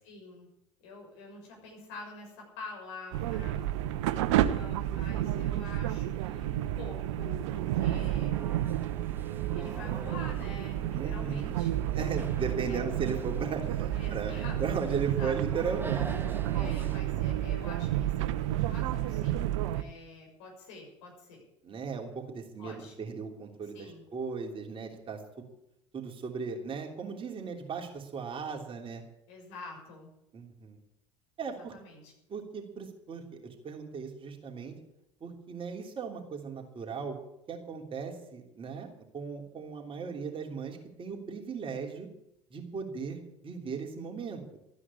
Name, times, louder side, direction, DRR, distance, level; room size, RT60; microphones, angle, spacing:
voice 1, 0.0-0.5 0.8-3.6 4.4-8.4 9.5-12.8 13.9-15.3 16.5-21.4 22.6-22.9 23.7-24.0 29.3-30.1 31.5-32.1, left 3 dB, 65° left, 1 dB, 6.5 m, -47 dB
sound 1, 3.1-19.8, right 12 dB, 70° right, 0.9 m, -31 dB
sound 2, 7.4-17.0, right 3 dB, 15° right, 1.5 m, -46 dB
voice 2, 10.9-11.5 11.9-16.4 21.6-25.4 25.9-29.0 30.3-30.8 31.4-31.7 32.3-34.7 35.2-37.2 37.5-38.9 39.1-42.1 42.5-43.2 43.4-44.4, right 5 dB, 35° right, 2 dB, 3.2 m, -37 dB
14.0 x 9.8 x 8.6 m, 0.81 s
hypercardioid pair, 70°, 16 cm